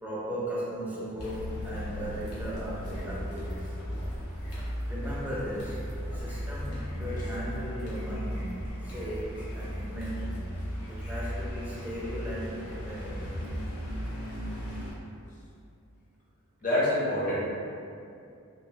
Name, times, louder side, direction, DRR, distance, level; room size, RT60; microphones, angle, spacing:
voice 1, 0.0-3.8 4.9-10.5 10.9-13.3, equal, 10° right, -8 dB, 0.4 m, -37 dB
Car, 1.2-14.9, equal, 85° left, 0.8 m, -36 dB
voice 2, 16.6-17.4, left 1 dB, 35° left, -8 dB, 0.6 m, -26 dB
2.9 x 2.0 x 2.7 m, 2.5 s
head